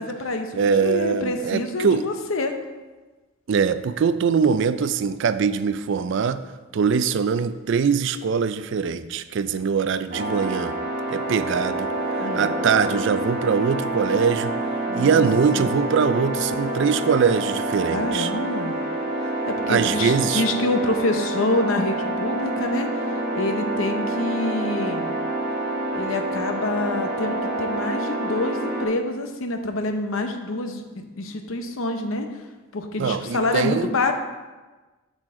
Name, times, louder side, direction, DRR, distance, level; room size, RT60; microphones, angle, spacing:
voice 1, 0.0-2.6 12.2-12.5 14.9-15.3 15.5-15.7 17.9-18.7 19.5-22.9 23.3-25.1 25.9-32.3 32.7-34.1, left 2 dB, 70° left, 6 dB, 0.8 m, -27 dB
voice 2, 0.5-2.1 3.5-6.4 6.7-10.7 11.1-14.5 14.9-18.3 19.7-20.4 33.0-33.9, right 6 dB, 60° right, 13 dB, 0.4 m, -22 dB
sound 1, 10.1-28.9, right 1 dB, 40° right, 1.4 m, -27 dB
7.7 x 6.5 x 3.7 m, 1.2 s
head